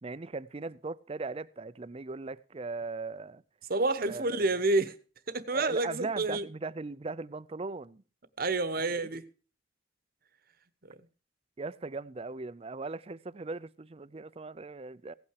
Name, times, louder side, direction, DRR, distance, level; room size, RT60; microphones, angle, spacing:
voice 1, 0.0-3.4 4.1-4.2 5.5-8.0 8.7-9.1 11.6-15.1, right 3 dB, 30° right, 0.5 m, -39 dB
voice 2, 3.7-5.0 5.3-6.5 8.4-9.3, right 2 dB, 50° right, 1.0 m, -29 dB
16.5 x 8.7 x 4.7 m
head